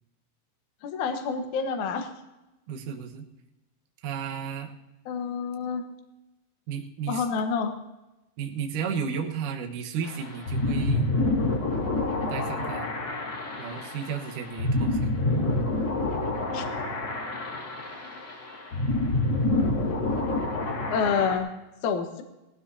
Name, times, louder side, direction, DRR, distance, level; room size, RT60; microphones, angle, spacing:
voice 1, 0.8-2.1 5.1-5.8 7.1-7.7 16.5-16.7 20.9-21.5 21.8-22.2, left 5 dB, 85° left, 5 dB, 1.7 m, -28 dB
voice 2, 2.7-3.2 4.0-4.7 6.7-7.3 8.4-11.1 12.3-12.9 13.6-15.1, right 7 dB, 90° right, 2 dB, 1.8 m, -33 dB
sound 1, 10.0-21.4, left 2 dB, 70° left, 1.0 m, -28 dB
19.5 x 15.0 x 2.8 m, 1.0 s
omnidirectional pair, 5.7 m